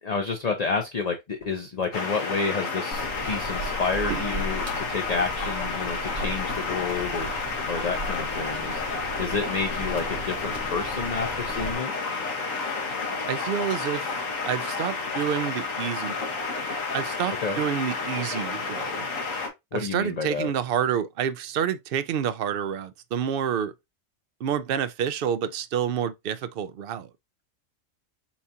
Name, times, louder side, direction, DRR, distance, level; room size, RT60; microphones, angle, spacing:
voice 1, 0.0-11.9 17.4-17.6 19.7-20.5, left 4 dB, 40° left, 0.6 m, -30 dB
sound 1, 1.9-19.5, left 4 dB, 75° left, 1.6 m, -31 dB
sound 2, 2.9-11.7, right 1 dB, 90° right, 2.2 m, -37 dB
voice 2, 13.3-14.1 14.5-16.4 16.9-19.1 19.7-23.7 24.4-27.1, right 8 dB, 60° right, 0.6 m, -28 dB
7.1 x 2.4 x 2.8 m
omnidirectional pair, 1.4 m